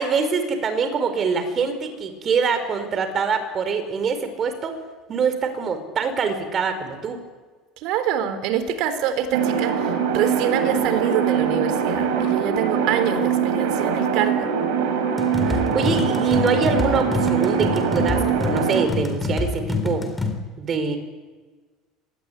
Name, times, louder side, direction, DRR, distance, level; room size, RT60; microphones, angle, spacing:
voice 1, 0.0-4.7 5.1-7.2 15.5-20.0 20.6-21.0, right 5 dB, 35° right, 9 dB, 4.7 m, -24 dB
voice 2, 7.8-14.5, right 9 dB, 65° right, 10 dB, 3.7 m, -25 dB
sound 1, 9.3-18.9, right 7 dB, 85° right, 4.4 m, -23 dB
sound 2, 15.2-20.3, left 3 dB, 10° left, 4.0 m, -27 dB
25.5 x 19.5 x 10.0 m, 1.4 s
cardioid pair, 130°, 0 cm